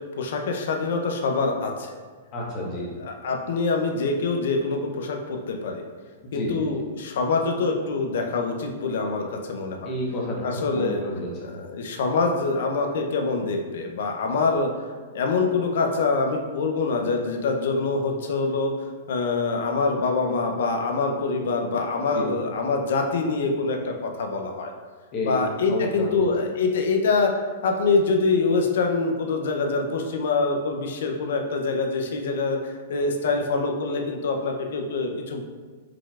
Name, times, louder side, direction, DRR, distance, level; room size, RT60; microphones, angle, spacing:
voice 1, 0.2-1.9 3.0-5.8 6.3-9.9 10.4-11.0 11.4-14.7 15.1-18.7 19.1-24.7 25.2-27.3 27.6-35.4, left 3 dB, 70° left, 3 dB, 0.6 m, -25 dB
voice 2, 2.3-2.9 6.3-6.7 9.8-10.4 10.7-11.5 22.1-22.3 25.1-25.4 25.7-26.2, left 1 dB, 40° left, -3 dB, 1.2 m, -30 dB
4.7 x 3.8 x 2.4 m, 1.5 s
hypercardioid pair, 115°, 0 cm